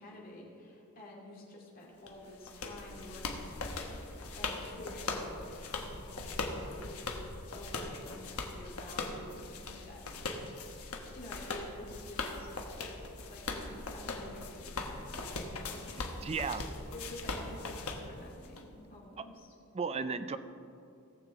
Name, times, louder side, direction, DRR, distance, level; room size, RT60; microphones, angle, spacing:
voice 1, 0.0-10.9 11.1-12.5 13.3-15.3 15.6-16.1 16.9-19.5, left 1 dB, 40° left, -4 dB, 2.3 m, -50 dB
sound 1, 2.1-18.6, left 3 dB, 75° left, 1.1 m, -40 dB
voice 2, 16.2-16.6 19.2-19.3 19.7-20.4, right 5 dB, 30° right, 11 dB, 0.4 m, -34 dB
18.0 x 7.1 x 3.6 m, 2.6 s
head